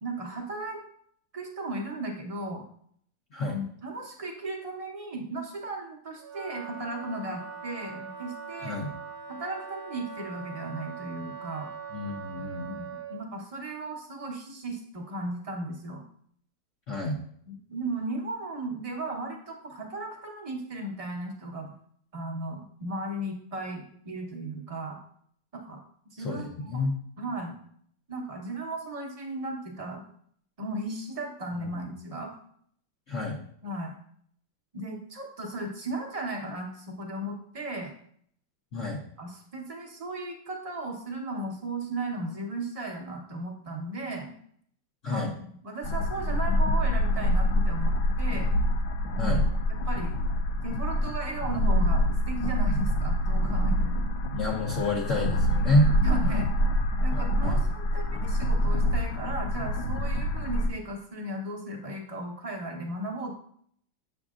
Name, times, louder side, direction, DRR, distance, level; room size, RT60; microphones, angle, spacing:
voice 1, 0.0-0.8 1.3-2.6 3.4-8.8 9.3-11.7 12.7-16.0 17.5-21.7 22.1-25.0 25.5-25.8 26.1-26.8 27.2-27.6 28.1-30.0 30.6-32.3 33.6-33.9 34.7-37.9 39.2-44.3 45.1-45.3 45.6-48.5 49.2-49.4 49.7-50.2 50.6-53.9 56.0-56.5 57.0-63.3, right 2 dB, 35° right, 0 dB, 0.6 m, -36 dB
Wind instrument woodwind instrument, 6.2-13.2, right 6 dB, 60° right, 1.3 m, -41 dB
voice 2, 11.9-12.8 16.9-17.2 26.2-26.9 31.7-31.9 33.1-33.4 38.7-39.0 45.0-45.3 49.2-49.4 54.3-55.9 56.2-56.4 57.1-57.6, left 1 dB, 60° left, -2 dB, 0.8 m, -28 dB
sound 1, 45.8-60.7, equal, 75° left, 1.4 m, -26 dB
7.3 x 6.4 x 2.4 m, 0.63 s
omnidirectional pair, 2.2 m